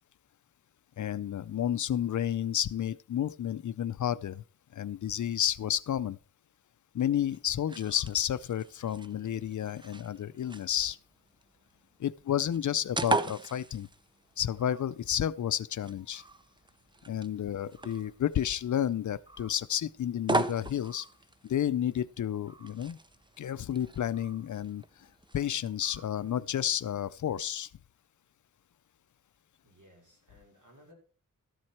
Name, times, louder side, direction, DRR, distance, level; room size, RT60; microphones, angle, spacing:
voice 1, 1.0-4.4 4.7-6.2 6.9-11.0 12.0-13.9 14.4-16.2 17.1-21.1 21.4-23.0 23.4-24.8 25.3-27.7, left 10 dB, 65° left, 0.5 m, -31 dB
sound 1, 7.1-26.9, right 3 dB, 15° right, 0.6 m, -40 dB
voice 2, 29.6-30.9, equal, 70° right, 5.0 m, -59 dB
13.0 x 7.7 x 4.3 m
wide cardioid pair, 110°, 32 cm